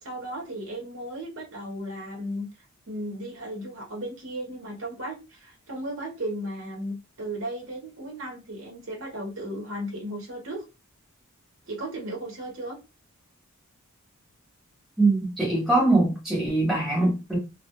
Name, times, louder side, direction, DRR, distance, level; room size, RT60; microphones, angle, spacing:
voice 1, 0.0-2.5 2.9-10.6 11.7-12.8, right 1 dB, 60° right, 0.8 m, -35 dB
voice 2, 15.0-17.4, right 2 dB, ahead, 0.8 m, -22 dB
2.2 x 2.1 x 2.9 m
head